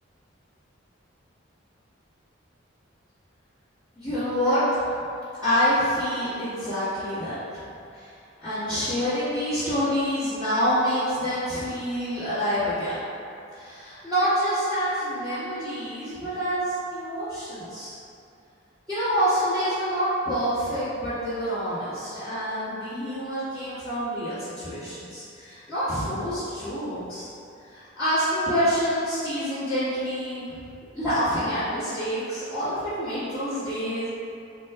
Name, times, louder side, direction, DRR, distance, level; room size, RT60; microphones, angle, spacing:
voice 1, 4.0-4.6 4.9-8.1 8.4-13.0 13.5-17.9 18.9-27.3 27.7-30.5 30.9-34.1, equal, 10° left, -21 dB, 1.2 m, -27 dB
4.1 x 2.2 x 3.4 m, 2.6 s
head